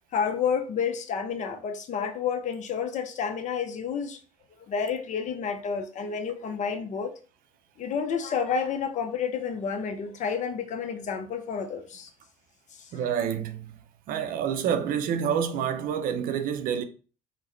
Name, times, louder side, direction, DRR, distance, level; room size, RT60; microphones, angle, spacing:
voice 1, 0.1-4.2 4.7-7.1 7.8-12.1 12.7-12.9, left 6 dB, 45° left, 0.5 m, -30 dB
voice 2, 12.9-13.7 14.1-16.8, right 8 dB, 55° right, 0.5 m, -28 dB
3.6 x 2.1 x 3.1 m
hypercardioid pair, 60°, 17 cm